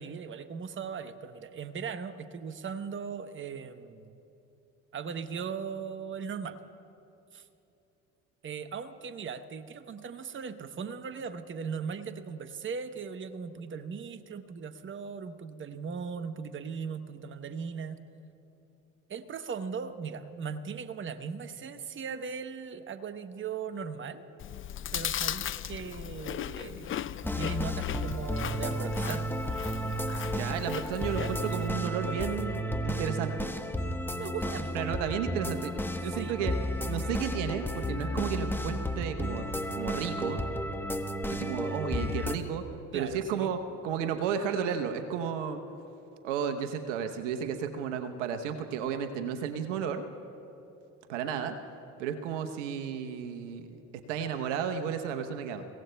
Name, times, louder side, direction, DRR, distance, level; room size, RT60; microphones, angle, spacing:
voice 1, 0.0-4.2 4.9-6.6 7.3-7.4 8.4-18.0 19.1-24.3 24.9-29.3 31.2-31.3 34.1-34.8 36.2-36.3 42.9-43.5, right 6 dB, 35° right, 10 dB, 0.9 m, -38 dB
Chewing mastication, 24.4-31.7, left 10 dB, 35° left, 0.5 m, -37 dB
sound 1, 27.2-42.4, equal, 5° left, 1.0 m, -33 dB
voice 2, 30.3-33.5 34.4-35.7 36.0-36.5 36.9-40.4 41.3-42.6 42.9-45.6 46.2-50.0 51.1-51.5 52.0-53.8 54.1-55.6, right 7 dB, 80° right, 7 dB, 1.0 m, -33 dB
29.5 x 17.0 x 2.3 m, 2.9 s
hypercardioid pair, 60°, 36 cm